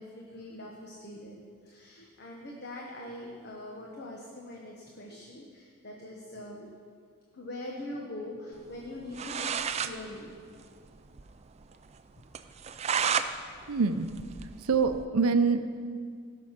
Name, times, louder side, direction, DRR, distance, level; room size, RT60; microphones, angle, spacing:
voice 1, 0.0-6.7 7.3-10.3 12.2-12.3 13.5-13.7, left 1 dB, 50° left, -1 dB, 1.2 m, -43 dB
sound 1, 8.9-9.0 9.1-9.9 10.3-10.4 10.6-10.7 11.1-11.2 11.6-11.7 12.3-13.3 13.7-15.0, right 7 dB, 30° right, 0.4 m, -31 dB
voice 2, 13.7-14.1 14.6-15.6, right 5 dB, 85° right, 10 dB, 0.6 m, -25 dB
16.5 x 6.3 x 5.8 m, 2.1 s
head